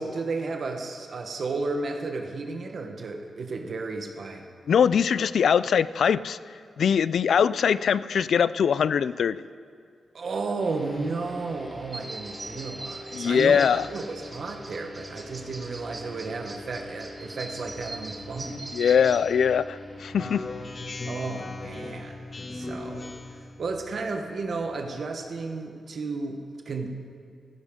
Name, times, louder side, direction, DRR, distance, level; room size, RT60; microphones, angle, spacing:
voice 1, 0.0-4.5 10.1-18.6 20.0-20.2 21.1-22.2 22.5-26.9, right 3 dB, 60° right, 4 dB, 1.1 m, -33 dB
voice 2, 4.7-6.4 6.8-9.4 13.1-13.9 18.7-20.5, left 7 dB, 75° left, 17 dB, 0.3 m, -22 dB
sound 1, 10.6-25.4, left 1 dB, 5° left, 2.4 m, -45 dB
sound 2, 11.9-19.2, right 2 dB, 25° right, 1.2 m, -41 dB
Speech synthesizer, 20.2-23.5, left 2 dB, 40° left, 1.1 m, -37 dB
16.0 x 15.0 x 3.7 m, 2.2 s
wide cardioid pair, 115°, 0 cm